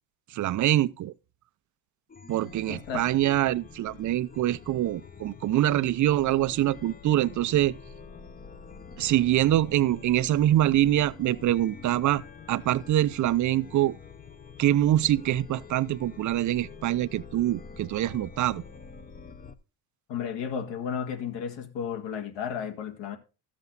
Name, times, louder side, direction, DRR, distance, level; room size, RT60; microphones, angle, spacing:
voice 1, 0.3-1.1 2.3-7.8 9.0-12.2 12.5-14.0 14.6-18.6, right 13 dB, 40° right, 0.5 m, -24 dB
Chime, 2.1-19.5, left 5 dB, 20° left, 0.7 m, -46 dB
voice 2, 2.7-3.1 20.1-23.2, left 7 dB, 60° left, 2.0 m, -33 dB
13.5 x 7.4 x 3.9 m
cardioid pair, 105°, 48 cm